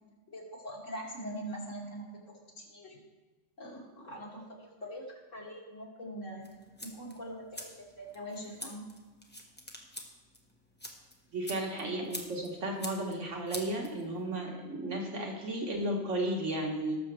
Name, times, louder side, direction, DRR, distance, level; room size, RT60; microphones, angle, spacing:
voice 1, 0.3-2.2 2.6-3.0 3.6-5.0 5.3-6.5 6.8-8.8 11.6-12.0, equal, 85° left, -4 dB, 3.0 m, -43 dB
sound 1, 6.4-14.4, left 1 dB, 10° left, 1.2 m, -47 dB
voice 2, 11.3-17.0, right 1 dB, 75° right, 0 dB, 1.8 m, -34 dB
19.0 x 6.9 x 3.3 m, 1.3 s
omnidirectional pair, 1.3 m